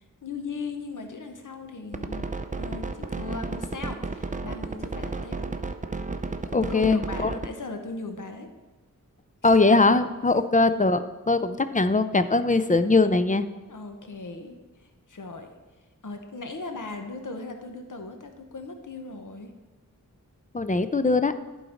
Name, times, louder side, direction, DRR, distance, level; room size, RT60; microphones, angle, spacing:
voice 1, 0.0-2.3 2.6-5.4 6.6-8.5 9.4-9.5 13.7-15.5 16.0-19.5, left 3 dB, 70° left, 6 dB, 1.0 m, -38 dB
sound 1, 1.9-7.5, right 3 dB, 25° right, 0.5 m, -32 dB
voice 2, 6.5-7.3 9.4-13.5 20.5-21.3, left 3 dB, 25° left, 11 dB, 0.4 m, -21 dB
11.0 x 3.9 x 5.1 m, 1.2 s
wide cardioid pair, 55°, 32 cm